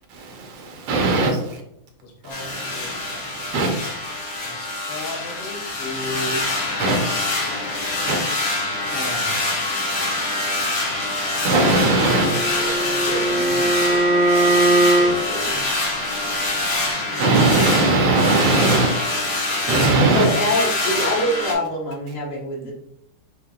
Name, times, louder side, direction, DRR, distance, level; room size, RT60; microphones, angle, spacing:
voice 1, 0.2-1.6 2.3-2.8 3.1-3.9 6.1-8.2 8.8-9.5 10.4-12.3 16.0-19.4 19.7-20.3, right 2 dB, 85° right, 2 dB, 1.9 m, -22 dB
voice 2, 2.2-2.9 4.5-6.5 8.9-9.3 17.2-17.3, left 1 dB, 70° left, 3 dB, 1.3 m, -33 dB
sound 1, 2.3-21.5, left 2 dB, 50° left, 1.3 m, -25 dB
voice 3, 12.0-15.6 20.1-22.7, equal, 85° left, -5 dB, 2.4 m, -27 dB
Bowed string instrument, 12.0-15.1, right 2 dB, 15° right, 1.4 m, -19 dB
6.8 x 2.8 x 2.4 m, 0.72 s
omnidirectional pair, 2.3 m